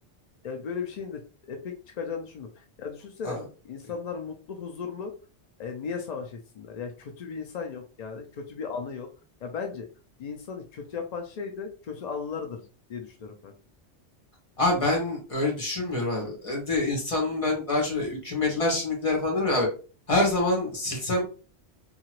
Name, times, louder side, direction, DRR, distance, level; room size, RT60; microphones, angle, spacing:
voice 1, 0.4-1.2 1.5-3.4 3.6-5.1 5.6-9.1 9.4-9.9 10.2-12.6 12.9-13.5, left 6 dB, 70° left, 4 dB, 0.4 m, -36 dB
voice 2, 14.6-19.7 20.1-21.2, left 2 dB, 30° left, -1 dB, 1.2 m, -26 dB
2.8 x 2.4 x 2.9 m, 0.35 s
omnidirectional pair, 1.2 m